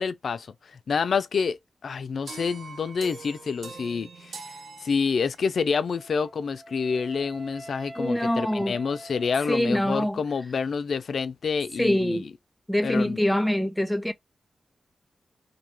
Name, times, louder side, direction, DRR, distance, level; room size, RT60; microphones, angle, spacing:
voice 1, 0.0-12.3 12.8-13.2, left 5 dB, 75° left, 0.3 m, -28 dB
sound 1, 2.3-5.6, right 4 dB, 85° right, 0.6 m, -43 dB
Wind instrument woodwind instrument, 5.9-10.1, right 1 dB, 55° right, 1.0 m, -45 dB
voice 2, 8.0-8.8 9.5-10.2 11.8-12.2 12.7-14.1, left 1 dB, 5° left, 0.5 m, -24 dB
2.6 x 2.2 x 2.9 m
cardioid pair, 65°, 0 cm